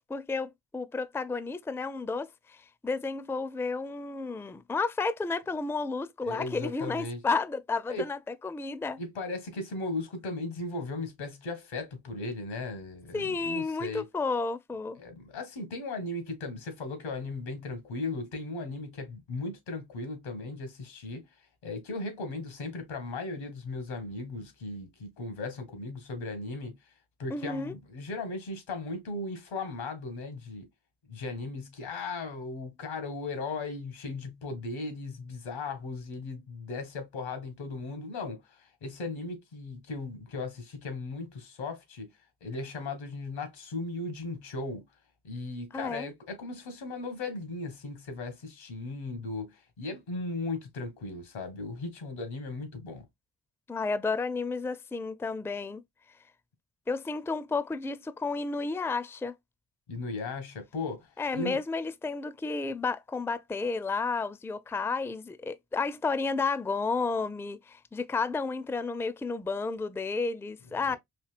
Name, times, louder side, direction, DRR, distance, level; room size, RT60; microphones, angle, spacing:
voice 1, 0.0-9.0 13.1-15.0 27.3-27.7 45.7-46.1 53.7-55.8 56.9-59.3 61.2-71.0, left 4 dB, 5° left, 0.4 m, -32 dB
voice 2, 6.2-7.2 7.9-8.0 9.0-14.1 15.0-21.3 21.6-26.8 27.2-30.7 31.1-42.1 42.4-44.8 45.2-53.0 59.9-61.6 70.8-71.0, left 3 dB, 85° left, 1.6 m, -37 dB
4.4 x 2.7 x 2.4 m
supercardioid pair, 45°, 45 cm